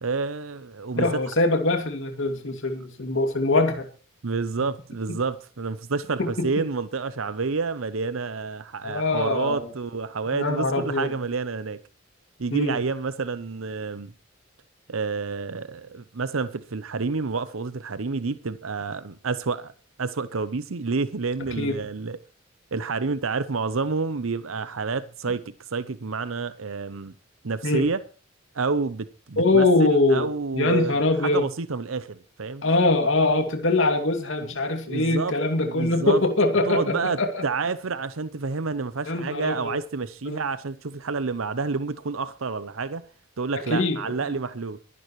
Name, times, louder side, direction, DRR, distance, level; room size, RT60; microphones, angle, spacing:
voice 1, 0.0-1.1 4.2-11.8 12.4-14.1 14.9-19.7 20.0-22.2 22.7-27.1 27.4-28.0 28.5-29.6 30.1-32.6 34.9-35.3 35.6-36.2 36.7-43.0 43.4-44.8, right 4 dB, 90° right, 0.8 m, -29 dB
voice 2, 1.0-3.9 5.1-5.2 6.2-6.5 8.8-9.7 10.3-11.2 12.5-12.8 21.6-21.8 27.6-27.8 29.4-30.3 30.5-31.5 32.6-37.4 39.1-39.8 40.3-40.4 43.7-44.1, left 2 dB, 70° left, 2.6 m, -23 dB
24.0 x 11.0 x 3.2 m
head